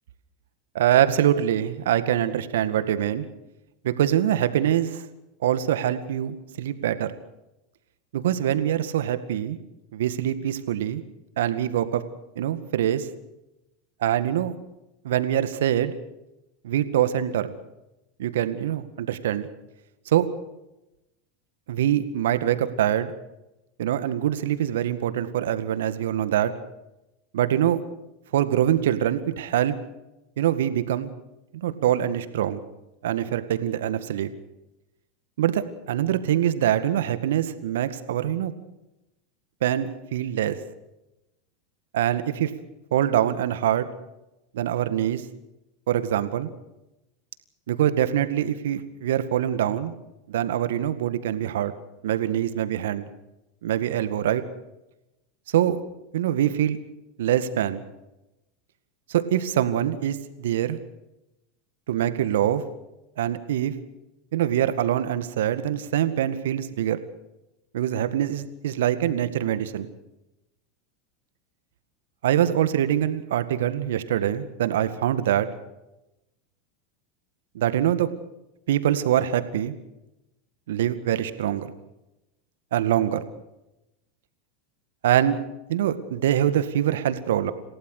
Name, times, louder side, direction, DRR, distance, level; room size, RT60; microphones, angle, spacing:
voice 1, 0.7-3.2 3.8-5.0 5.4-7.1 8.1-9.6 9.9-11.0 11.4-12.0 12.4-13.1 14.0-14.5 15.0-15.9 16.6-17.5 18.2-19.5 20.1-20.3 21.7-23.1 23.8-26.5 27.3-27.8 28.3-29.7 30.4-31.1 31.5-32.6 33.0-34.3 35.4-38.5 39.6-40.6 41.9-42.5 42.9-43.9 44.5-45.2 45.9-46.5 47.7-49.9 50.3-51.7 52.0-53.0 53.6-54.4 55.5-55.8 56.1-56.8 57.2-57.8 59.1-60.8 61.9-62.6 63.2-63.7 64.3-67.0 67.7-69.9 72.2-75.5 77.5-78.1 78.7-79.7 80.7-81.7 82.7-83.2 85.0-85.4 85.7-87.5, right 11 dB, 70° right, 11 dB, 1.9 m, -24 dB
28.0 x 17.0 x 6.6 m, 0.95 s
hypercardioid pair, 90°, 0 cm